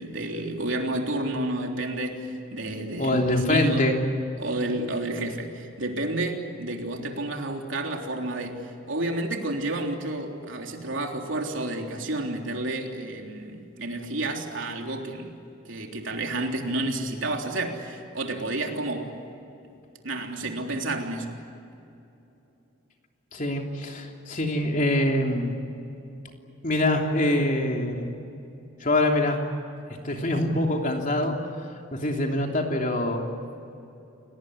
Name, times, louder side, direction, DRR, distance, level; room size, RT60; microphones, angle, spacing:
voice 1, 0.0-3.2 3.5-4.0 4.4-15.4 15.7-19.1 20.0-21.4, right 2 dB, 70° right, 2 dB, 3.5 m, -30 dB
voice 2, 3.0-4.0 23.3-25.5 26.6-28.1 28.8-29.4 30.0-31.3 31.9-33.2, left 1 dB, 40° left, 2 dB, 3.2 m, -24 dB
29.0 x 19.5 x 9.8 m, 2.8 s
head